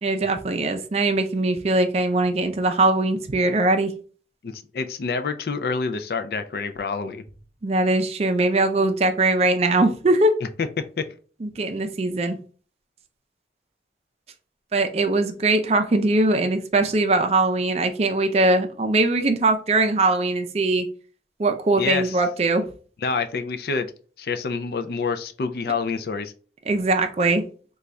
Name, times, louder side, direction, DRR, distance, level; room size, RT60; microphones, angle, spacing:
voice 1, 0.0-3.9 7.6-10.3 11.4-12.4 14.7-20.9 21.4-22.7 26.7-27.4, right 2 dB, 35° right, 6 dB, 0.4 m, -21 dB
voice 2, 4.4-7.2 11.0-11.1 21.8-22.2 23.0-23.9 24.2-26.3, left 4 dB, 60° left, 9 dB, 0.4 m, -27 dB
3.8 x 2.3 x 3.1 m, 0.39 s
head